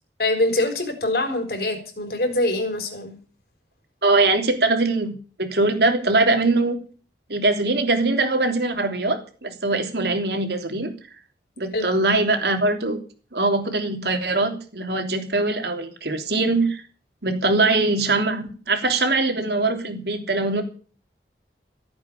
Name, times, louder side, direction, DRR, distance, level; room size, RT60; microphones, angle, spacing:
voice 1, 0.2-3.2 11.7-11.9, left 2 dB, 60° left, 6 dB, 4.2 m, -24 dB
voice 2, 4.0-5.1 5.4-6.7 7.3-10.9 11.6-13.0 13.3-16.8 17.2-20.6, right 2 dB, 70° right, 5 dB, 3.2 m, -22 dB
15.5 x 8.7 x 8.3 m, 0.39 s
head